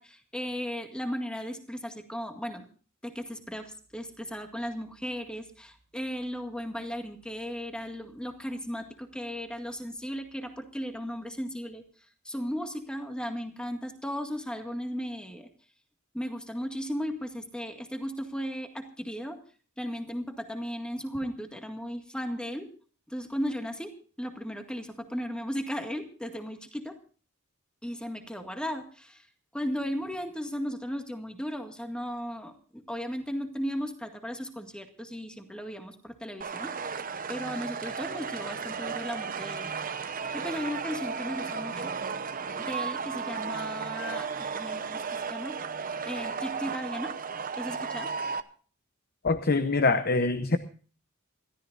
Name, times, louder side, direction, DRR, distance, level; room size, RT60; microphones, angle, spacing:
voice 1, 0.0-2.7 3.0-11.8 12.3-15.5 16.1-19.4 19.8-22.7 23.1-27.0 27.8-29.3 29.5-36.8 37.3-39.7 40.3-41.9 42.6-45.6 46.0-47.1 47.6-48.1, equal, 5° left, 4 dB, 2.0 m, -36 dB
sound 1, 36.4-48.4, right 5 dB, 40° right, 0.9 m, -34 dB
voice 2, 49.2-50.6, left 3 dB, 45° left, 10 dB, 0.9 m, -24 dB
28.0 x 13.5 x 2.6 m, 0.40 s
head